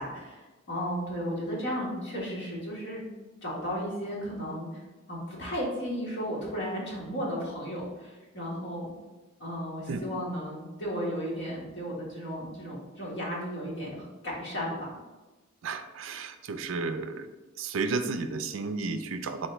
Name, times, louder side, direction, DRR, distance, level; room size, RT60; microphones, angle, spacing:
voice 1, 0.0-3.0 3.4-4.8 5.1-8.9 9.4-14.9, equal, 55° left, -5 dB, 1.4 m, -34 dB
voice 2, 15.6-17.3 17.6-19.5, right 4 dB, 70° right, 9 dB, 0.4 m, -32 dB
4.2 x 3.4 x 3.1 m, 1.2 s
head